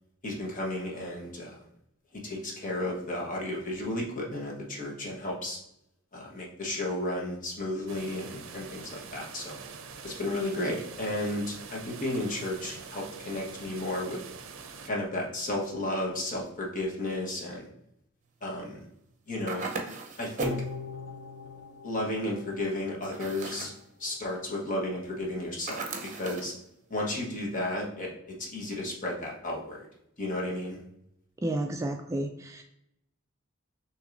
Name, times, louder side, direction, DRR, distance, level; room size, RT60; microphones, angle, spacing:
voice 1, 0.2-1.6 2.1-5.6 6.1-9.6 10.0-14.2 14.8-17.7 18.4-18.8 19.3-19.6 20.2-20.5 21.8-23.7 24.0-25.8 26.1-26.5 26.9-29.9 30.2-30.8, left 1 dB, 40° left, -2 dB, 1.2 m, -33 dB
sound 1, 7.9-14.9, right 5 dB, 75° right, 0.5 m, -45 dB
sound 2, 19.5-20.7 23.0-23.8 25.7-26.5, right 3 dB, 40° right, 0.8 m, -36 dB
sound 3, 20.4-23.7 24.1-24.2, left 4 dB, 70° left, 0.6 m, -41 dB
voice 2, 31.4-32.6, right 1 dB, 15° right, 4 dB, 0.3 m, -31 dB
6.1 x 3.1 x 2.5 m, 0.80 s
head